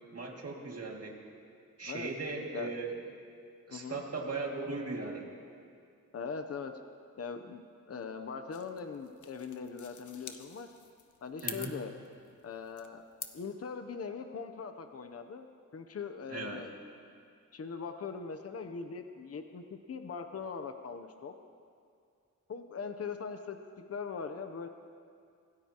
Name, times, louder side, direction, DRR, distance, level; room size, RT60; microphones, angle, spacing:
voice 1, 0.1-1.3 1.8-3.0 3.7-5.3 11.4-11.7 16.3-16.6, right 3 dB, 50° right, -1 dB, 2.3 m, -38 dB
voice 2, 3.7-4.0 6.1-6.7 7.2-10.7 11.2-11.9 12.4-13.0 13.3-15.5 15.7-16.7 17.5-21.3 22.5-24.7, left 5 dB, 50° left, 7 dB, 0.8 m, -41 dB
sound 1, 8.5-13.5, left 7 dB, 70° left, 0.9 m, -47 dB
26.0 x 17.5 x 3.0 m, 2.3 s
wide cardioid pair, 145°, 32 cm